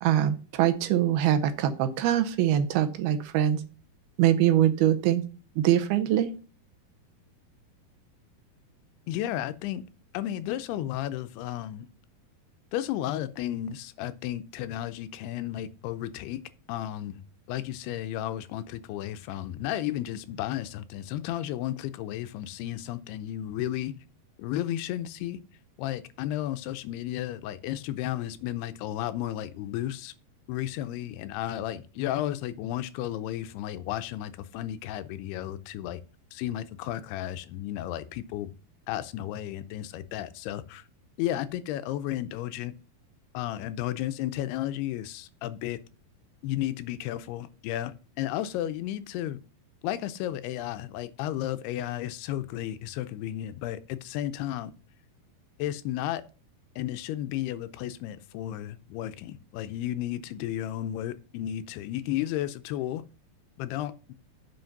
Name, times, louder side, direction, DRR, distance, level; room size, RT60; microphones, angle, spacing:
voice 1, 0.0-3.6 4.2-5.2 5.6-6.3, right 11 dB, 80° right, 2.6 m, -23 dB
voice 2, 9.1-9.8 10.1-11.9 12.7-16.4 16.7-17.2 17.5-23.9 24.4-25.4 25.8-30.1 30.5-36.0 36.3-38.5 38.9-40.8 41.2-42.7 43.3-45.8 46.4-49.4 49.8-54.7 55.6-56.2 56.8-63.0 63.6-64.1, left 13 dB, 85° left, 2.6 m, -33 dB
7.8 x 5.7 x 5.8 m
omnidirectional pair, 4.6 m